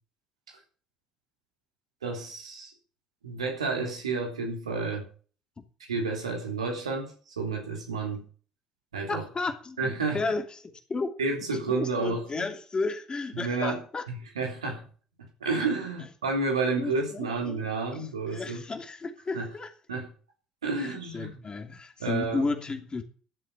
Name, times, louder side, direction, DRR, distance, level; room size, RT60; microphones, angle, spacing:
voice 1, 2.0-2.7 3.2-5.1 5.9-8.3 8.9-9.2 9.8-10.2 11.2-12.5 13.3-13.8 14.1-14.8 15.2-18.6 19.3-19.5 19.9-20.1 20.6-21.3 22.0-22.4, right 3 dB, 80° right, 3.2 m, -30 dB
voice 2, 9.1-11.2 11.7-14.0 16.8-19.7 20.8-23.0, left 3 dB, 30° left, 2.9 m, -33 dB
13.0 x 7.7 x 6.8 m
figure-of-eight pair, 50°, 3 cm